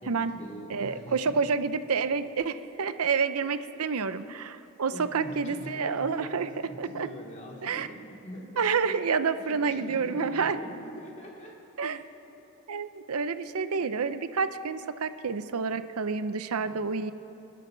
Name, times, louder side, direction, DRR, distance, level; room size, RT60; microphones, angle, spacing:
voice 1, 0.0-1.3 2.3-2.6 3.4-4.1 4.9-8.7 9.3-12.0 12.7-12.8 13.6-13.9 16.5-16.8, right 1 dB, 30° left, -2 dB, 2.6 m, -43 dB
voice 2, 0.7-6.5 6.8-7.1 7.6-7.9 8.6-10.6 11.8-12.0 12.7-17.1, right 5 dB, 85° right, 12 dB, 0.6 m, -29 dB
29.5 x 12.5 x 3.9 m, 2.9 s
head